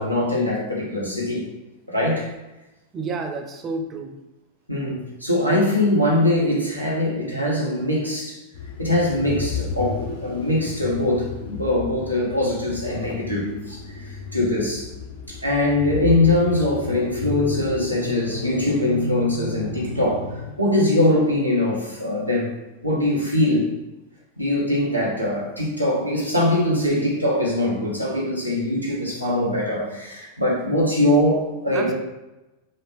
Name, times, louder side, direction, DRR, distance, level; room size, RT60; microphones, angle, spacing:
voice 1, 0.0-1.4 1.9-2.3 4.7-8.4 8.8-14.9 15.3-20.2 20.6-22.5 22.8-23.7 24.4-31.9, left 1 dB, 90° left, -4 dB, 0.9 m, -22 dB
voice 2, 2.9-4.2 31.7-31.9, right 3 dB, 25° right, 4 dB, 0.5 m, -30 dB
sound 1, 8.5-20.7, left 3 dB, 60° left, 0.6 m, -32 dB
3.8 x 2.1 x 3.4 m, 1.0 s
figure-of-eight pair, 90°, 0 cm